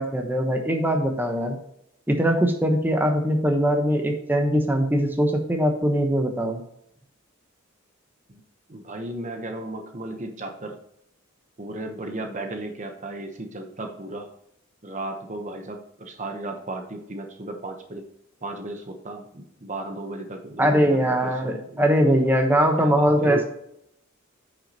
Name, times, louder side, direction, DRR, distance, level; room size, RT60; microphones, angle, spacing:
voice 1, 0.0-1.6 2.1-6.6 20.6-23.4, equal, 10° right, 3 dB, 1.0 m, -21 dB
voice 2, 8.7-10.8 11.6-14.3 14.8-18.0 18.4-21.8 22.8-23.4, right 2 dB, 35° right, 5 dB, 0.9 m, -35 dB
9.6 x 6.1 x 2.9 m, 0.75 s
head